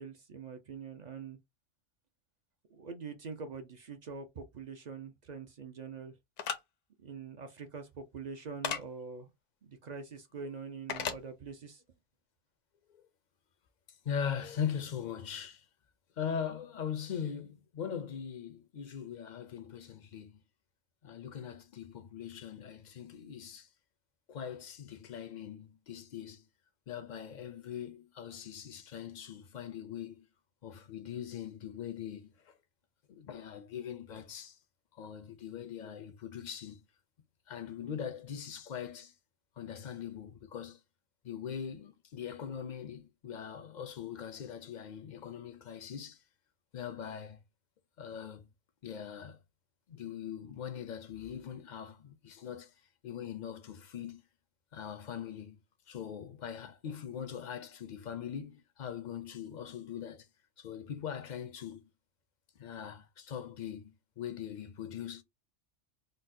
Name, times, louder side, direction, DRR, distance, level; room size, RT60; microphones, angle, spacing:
voice 1, 0.0-1.4 2.7-6.1 7.0-9.3 9.6-11.8, right 5 dB, 55° right, 0.5 m, -44 dB
sound 1, 6.4-6.6 8.6-8.8 10.9-11.2, left 7 dB, 85° left, 0.9 m, -34 dB
voice 2, 14.0-15.6 16.2-20.4 21.0-23.7 24.3-26.4 26.9-30.3 30.6-32.3 33.1-34.6 35.0-36.8 37.5-39.1 39.6-40.8 41.2-46.2 46.7-47.4 48.0-48.4 48.8-49.4 49.9-52.7 53.0-54.2 54.7-55.6 55.9-60.3 60.6-61.9 62.6-65.2, left 8 dB, 55° left, 0.5 m, -41 dB
4.1 x 2.0 x 2.6 m
omnidirectional pair, 1.2 m